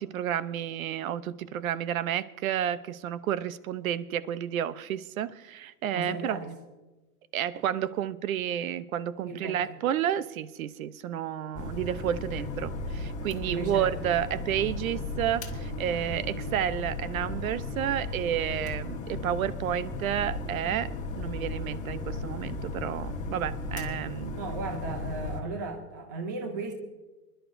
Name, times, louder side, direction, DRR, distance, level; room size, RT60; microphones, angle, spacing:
voice 1, 0.0-6.4 7.3-24.4, right 10 dB, 55° right, 0.8 m, -31 dB
voice 2, 5.9-6.5 9.2-9.6 13.5-13.9 16.0-16.3 24.4-26.7, right 3 dB, 15° right, 0.4 m, -36 dB
sound 1, 11.5-25.4, left 2 dB, 15° left, 1.4 m, -35 dB
25.5 x 11.5 x 2.6 m
hypercardioid pair, 150°, 49 cm